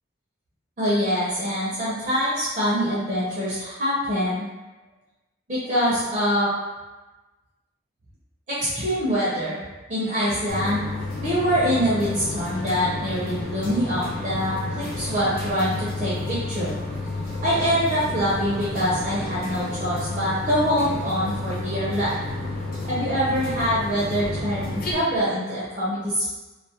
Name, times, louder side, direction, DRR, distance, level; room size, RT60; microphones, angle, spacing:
voice 1, 0.8-4.5 5.5-6.5 8.5-10.8 11.2-16.7 17.4-22.2 22.9-26.3, equal, 35° right, -9 dB, 0.5 m, -24 dB
sound 1, 10.5-24.9, left 2 dB, 45° left, 0.4 m, -31 dB
2.3 x 2.0 x 2.7 m, 1.1 s
head